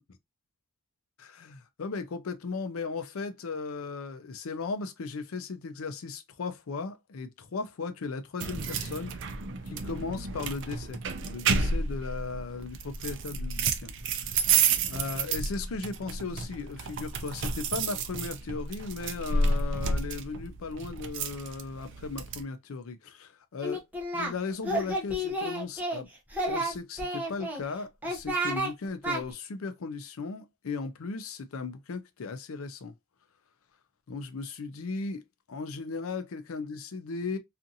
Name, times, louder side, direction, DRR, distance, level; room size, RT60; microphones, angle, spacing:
voice 1, 1.2-9.1 9.7-14.5 14.9-23.8 24.1-26.1 26.5-32.9 34.1-35.2 35.5-37.4, left 4 dB, 85° left, 0.5 m, -36 dB
sound 1, 8.4-22.4, right 4 dB, 60° right, 0.4 m, -31 dB
Singing, 23.6-24.3 24.6-26.0 26.3-27.6 28.0-28.7 29.0-29.2, right 1 dB, 10° right, 0.6 m, -31 dB
2.6 x 2.5 x 2.6 m
head